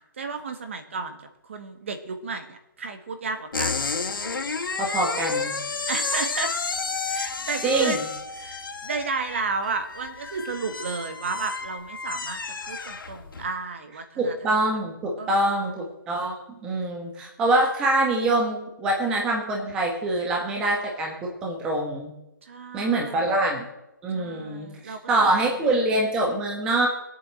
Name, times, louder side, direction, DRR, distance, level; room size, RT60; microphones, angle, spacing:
voice 1, 0.2-1.2 1.5-3.7 5.9-6.5 7.1-8.0 8.4-14.3 15.2-15.7 22.4-23.3 24.1-25.8, right 4 dB, 35° right, 7 dB, 1.7 m, -33 dB
sound 1, 3.5-13.5, left 4 dB, 80° left, 3.0 m, -31 dB
voice 2, 4.8-5.6 7.6-8.0 14.2-16.3 16.6-22.1 22.7-23.6 24.0-26.9, right 2 dB, 5° right, -1 dB, 1.3 m, -25 dB
18.5 x 8.4 x 7.6 m, 0.97 s
hypercardioid pair, 175°, 11 cm